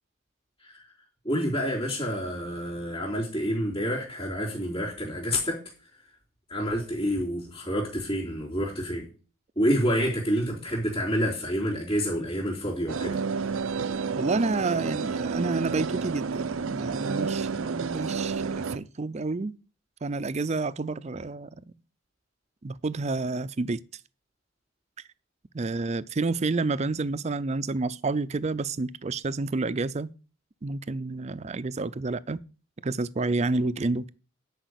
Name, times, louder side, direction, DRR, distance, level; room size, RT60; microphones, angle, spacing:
voice 1, 1.2-5.6 6.5-9.1 9.6-13.2, equal, 25° left, 3.8 m, -28 dB
sound 1, 12.9-18.8, right 5 dB, 90° right, 0.6 m, -30 dB
voice 2, 14.2-19.6 20.0-21.5 22.6-23.8 25.5-30.1 30.6-32.4 32.8-34.1, right 3 dB, 35° right, 0.5 m, -29 dB
10.5 x 5.0 x 8.1 m
head